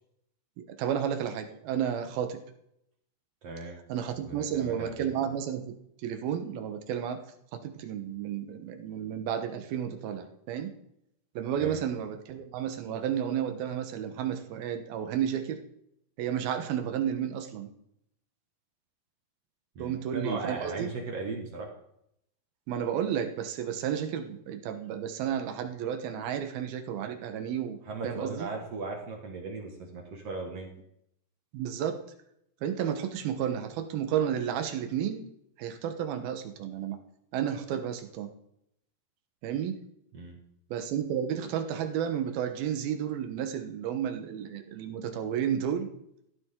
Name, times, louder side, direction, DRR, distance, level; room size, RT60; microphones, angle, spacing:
voice 1, 0.6-2.4 3.9-5.8 6.0-7.2 7.6-10.7 11.4-15.6 16.2-17.7 19.8-20.9 22.7-27.8 28.0-28.5 31.5-32.0 32.6-35.2 35.6-37.0 37.3-38.3 39.4-39.8 40.7-45.9, right 9 dB, 85° right, 7 dB, 3.0 m, -32 dB
voice 2, 3.4-3.8 4.2-5.1 11.6-11.8 19.8-21.7 27.9-30.7 40.1-40.4, right 3 dB, 50° right, 1 dB, 2.4 m, -37 dB
15.5 x 12.5 x 3.8 m, 0.75 s
omnidirectional pair, 4.2 m